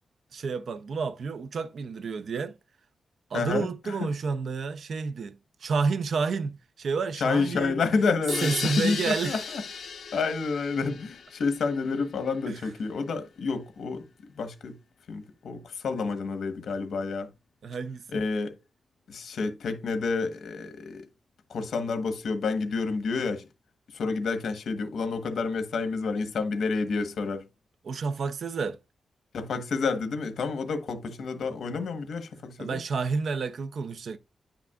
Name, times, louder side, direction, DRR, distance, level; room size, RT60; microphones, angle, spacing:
voice 1, 0.3-2.6 3.3-7.8 8.4-9.5 12.5-12.6 17.6-18.2 27.8-28.8 32.6-34.2, right 5 dB, 60° right, 0.6 m, -30 dB
voice 2, 3.3-4.1 7.2-9.6 10.1-14.1 14.4-14.7 15.1-17.3 18.1-18.5 19.1-21.1 21.5-23.4 23.9-27.4 29.3-32.8, left 4 dB, 80° left, 1.1 m, -29 dB
sound 1, 8.3-12.0, left 6 dB, 65° left, 0.8 m, -36 dB
10.0 x 5.7 x 2.3 m
wide cardioid pair, 180°, 0 cm